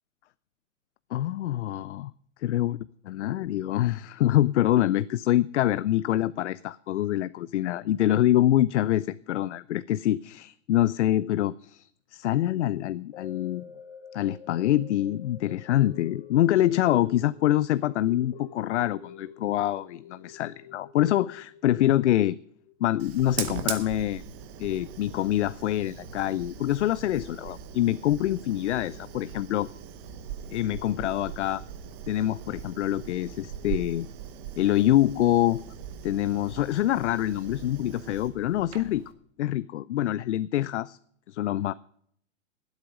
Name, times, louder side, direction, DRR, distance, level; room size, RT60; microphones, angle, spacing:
voice 1, 1.1-2.1 2.4-2.8 3.1-13.7 14.1-22.4 22.8-24.2 24.6-29.7 30.5-31.6 32.1-34.1 34.6-35.6 36.0-39.0 39.4-41.0 41.3-41.7, left 13 dB, 70° left, 17 dB, 0.5 m, -25 dB
sound 1, 13.1-23.5 23.9-24.0, left 7 dB, 45° left, 1.2 m, -48 dB
Fire, 23.0-39.1, right 8 dB, 20° right, 0.8 m, -40 dB
19.5 x 8.2 x 5.1 m, 0.64 s
hypercardioid pair, 165°, 37 cm